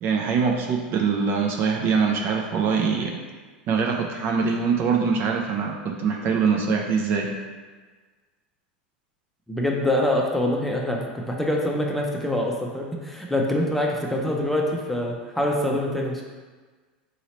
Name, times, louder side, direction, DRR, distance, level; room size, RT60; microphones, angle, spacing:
voice 1, 0.0-3.2 3.7-7.3, right 5 dB, 45° right, 1 dB, 0.5 m, -23 dB
voice 2, 9.5-16.2, left 1 dB, 5° left, -1 dB, 0.6 m, -25 dB
4.0 x 2.8 x 3.0 m, 1.4 s
hypercardioid pair, 90°, 5 cm